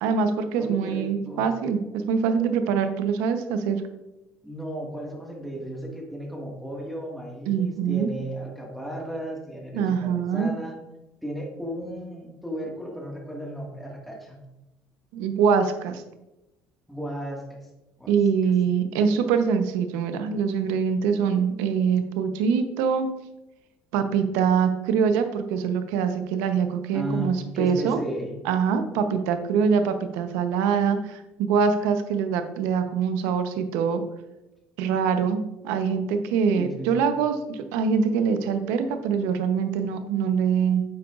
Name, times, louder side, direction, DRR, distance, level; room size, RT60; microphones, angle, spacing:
voice 1, 0.0-1.8 2.1-3.8 7.5-8.1 9.7-10.5 15.1-16.0 18.1-23.1 23.9-28.0 28.4-34.0 34.8-40.8, right 6 dB, 90° right, 8 dB, 0.8 m, -24 dB
voice 2, 0.6-1.5 4.4-10.8 11.2-14.4 16.9-17.6 18.0-18.1 26.9-28.4 36.5-37.1, right 1 dB, ahead, -1 dB, 1.7 m, -34 dB
9.7 x 7.8 x 2.4 m, 0.97 s
cardioid pair, 130°, 5 cm